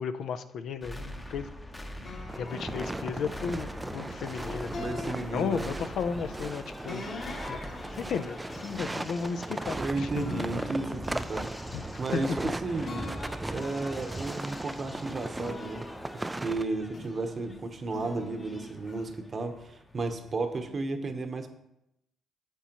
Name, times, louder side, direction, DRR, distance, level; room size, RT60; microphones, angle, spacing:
voice 1, 0.0-1.5 2.1-4.9 5.3-7.0 7.5-7.6 7.9-10.1 11.7-11.8 12.1-12.3, left 6 dB, 70° left, 9 dB, 0.5 m, -34 dB
sound 1, 0.8-20.8, left 1 dB, 15° left, 0.8 m, -46 dB
sound 2, 2.0-4.2 4.7-6.1 6.9-9.8 10.1-12.5 12.8-14.8 15.3-17.3 17.9-19.0, left 3 dB, 55° left, 1.5 m, -44 dB
sound 3, 2.3-16.6, right 2 dB, 15° right, 0.3 m, -37 dB
voice 2, 4.7-5.7 9.6-11.5 12.0-12.3 12.6-13.1 13.5-15.9 16.1-21.5, right 3 dB, 40° right, 7 dB, 1.0 m, -33 dB
8.9 x 6.9 x 3.0 m, 0.82 s
cardioid pair, 90°, 0 cm